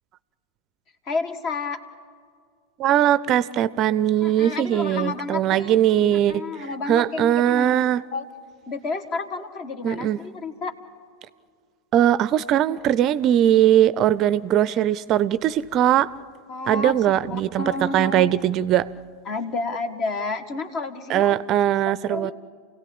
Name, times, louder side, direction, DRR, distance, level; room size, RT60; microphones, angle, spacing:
voice 1, 1.1-1.8 4.2-5.8 6.1-7.8 8.1-8.3 8.7-10.7 16.5-18.3 19.3-21.4 21.9-22.3, left 3 dB, 40° left, 8 dB, 1.9 m, -30 dB
voice 2, 2.8-6.4 6.9-8.0 9.8-10.2 11.9-16.1 16.7-18.9 21.1-22.3, right 11 dB, 40° right, 18 dB, 0.5 m, -20 dB
29.0 x 17.0 x 8.7 m, 2.1 s
figure-of-eight pair, 90°, 0 cm